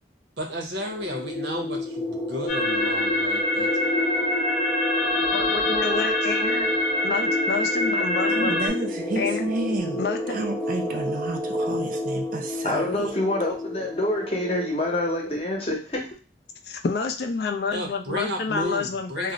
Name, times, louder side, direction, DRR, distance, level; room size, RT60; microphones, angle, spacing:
voice 1, 0.4-3.7 17.7-19.3, equal, 75° right, 0.7 m, -32 dB
sound 1, 0.8-15.1, left 2 dB, ahead, 0.7 m, -30 dB
sound 2, 2.5-8.7, left 1 dB, 90° left, 0.9 m, -25 dB
voice 2, 5.3-6.7 7.0-8.6 9.2-9.4 10.0-10.5 16.6-19.3, left 4 dB, 60° left, 0.4 m, -29 dB
voice 3, 8.3-10.0 10.3-13.1, right 2 dB, 50° right, 0.4 m, -30 dB
voice 4, 12.6-16.1, left 1 dB, 35° left, 0.7 m, -26 dB
2.4 x 2.0 x 3.8 m
head